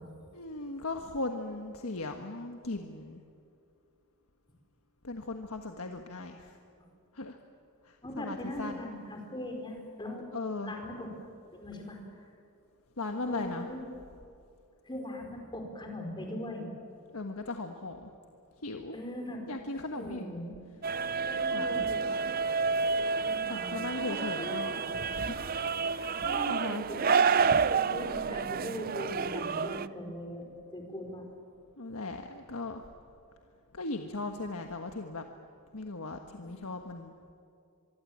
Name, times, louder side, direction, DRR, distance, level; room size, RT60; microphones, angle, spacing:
voice 1, 0.3-3.2 5.0-6.6 7.1-7.4 7.8-8.8 10.3-10.7 13.0-13.7 17.1-18.1 18.6-19.0 19.5-20.2 21.5-21.7 23.5-24.8 25.1-25.5 25.9-26.2 26.5-26.8 31.8-32.8 33.7-35.2 35.7-37.1, left 2 dB, 75° left, 4 dB, 1.5 m, -38 dB
voice 2, 8.0-10.2 10.6-11.1 11.5-12.0 13.2-13.8 14.8-16.7 18.9-19.4 19.9-20.6 21.3-22.1 23.2-24.6 26.2-31.3 36.4-36.6, left 1 dB, 20° left, 2 dB, 4.8 m, -40 dB
sound 1, 20.8-29.9, right 5 dB, 45° right, 0.6 m, -29 dB
25.5 x 23.5 x 8.7 m, 2.5 s
head